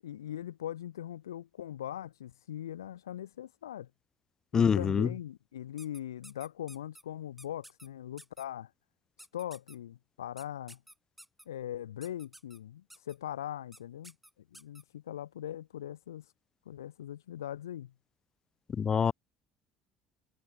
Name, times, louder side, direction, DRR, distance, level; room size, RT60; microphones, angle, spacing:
voice 1, 0.0-3.9 4.5-8.7 9.3-10.8 11.5-14.2 14.5-16.3 16.7-17.9, left 11 dB, 75° left, 7.0 m, -40 dB
voice 2, 4.5-5.1 18.8-19.1, left 7 dB, 35° left, 0.3 m, -25 dB
sound 1, 5.8-7.0 7.4-7.9 8.2-8.4 9.2-9.8 10.4-11.4 12.0-12.6 12.9-13.1 13.7-13.8 14.0-14.8, equal, 5° right, 7.4 m, -52 dB
figure-of-eight pair, 55°, 2 cm